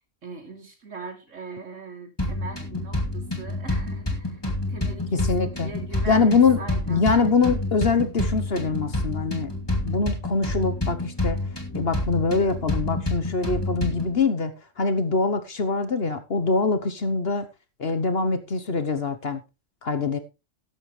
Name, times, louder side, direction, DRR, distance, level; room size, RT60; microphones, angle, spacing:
voice 1, 0.2-4.4 4.7-7.0, right 4 dB, 75° right, 3.3 m, -40 dB
sound 1, 2.2-14.2, left 2 dB, 20° left, 2.7 m, -28 dB
voice 2, 5.1-5.7 6.1-6.6 6.9-9.6 9.8-11.4 11.7-17.5 17.8-19.4 19.8-20.2, left 4 dB, 50° left, 1.3 m, -23 dB
13.5 x 11.0 x 3.2 m
omnidirectional pair, 1.3 m